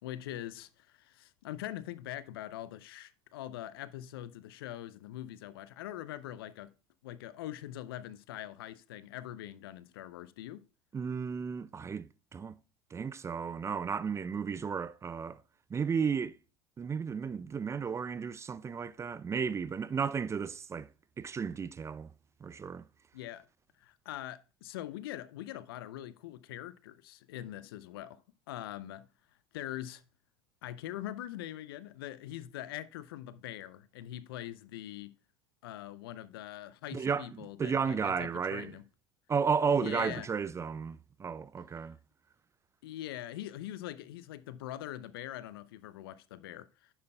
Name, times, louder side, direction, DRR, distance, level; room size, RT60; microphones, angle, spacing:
voice 1, 0.0-6.7 7.0-10.6 23.1-23.4 23.8-28.2 28.5-29.1 29.5-30.0 30.6-35.2 35.6-38.8 39.7-40.3 42.8-46.9, left 13 dB, 70° left, 0.6 m, -43 dB
voice 2, 10.9-12.6 12.9-15.4 15.7-16.3 16.8-20.9 21.2-22.1 22.4-22.8 36.9-38.7 39.3-42.0, right 6 dB, 20° right, 0.4 m, -33 dB
10.5 x 8.8 x 2.3 m
hypercardioid pair, 75°, 13 cm